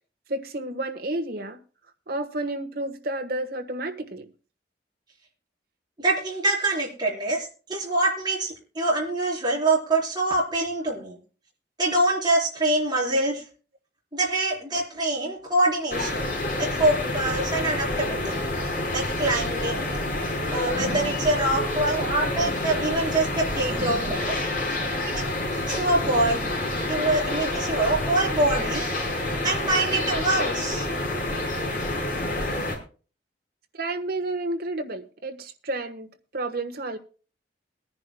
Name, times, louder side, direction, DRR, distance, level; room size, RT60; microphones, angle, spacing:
voice 1, 0.3-1.6 2.1-4.3 33.7-36.1 36.3-37.0, right 2 dB, 60° right, 5 dB, 1.3 m, -31 dB
voice 2, 6.0-11.2 11.8-13.4 14.1-16.3 16.6-18.4 18.9-19.9 20.5-24.3 25.0-25.3 25.7-26.5 26.9-28.8 29.4-30.9, right 2 dB, 25° right, -3 dB, 4.5 m, -25 dB
sound 1, 15.9-32.8, left 1 dB, 50° left, 4.7 m, -28 dB
23.0 x 10.5 x 2.3 m, 0.37 s
head